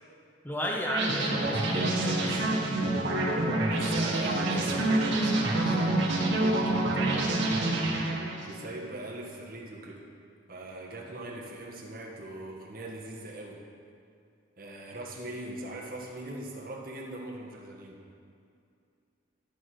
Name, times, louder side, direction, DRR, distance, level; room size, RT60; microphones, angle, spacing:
voice 1, 0.4-2.0 3.3-3.7, equal, 10° left, -1 dB, 0.6 m, -33 dB
sound 1, 0.9-8.6, right 2 dB, 75° right, 1.6 m, -27 dB
voice 2, 1.8-2.5 3.6-7.8 8.4-10.0 10.5-13.6 14.6-18.0, right 2 dB, 45° right, -2 dB, 1.3 m, -41 dB
12.0 x 5.9 x 4.9 m, 2.4 s
head